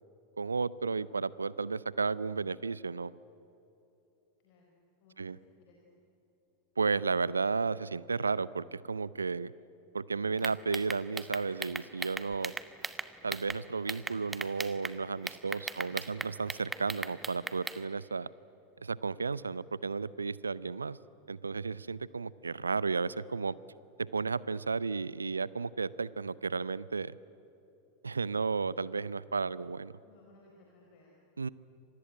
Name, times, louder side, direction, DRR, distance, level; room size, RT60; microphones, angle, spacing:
voice 1, 0.4-3.1 5.2-5.4 6.8-9.5 9.9-12.5 13.2-18.3 18.8-21.0 21.3-23.5 24.0-27.2 28.0-29.9 31.4-31.5, right 4 dB, 75° right, 21 dB, 0.5 m, -33 dB
voice 2, 4.4-4.7 5.0-6.0 15.2-16.3 30.0-31.2, left 2 dB, 45° left, -1 dB, 4.4 m, -61 dB
sound 1, 10.4-13.6 13.9-15.0 15.3-17.8, right 3 dB, 10° right, 1.1 m, -37 dB
26.0 x 19.5 x 10.0 m, 2.9 s
figure-of-eight pair, 90°, 0 cm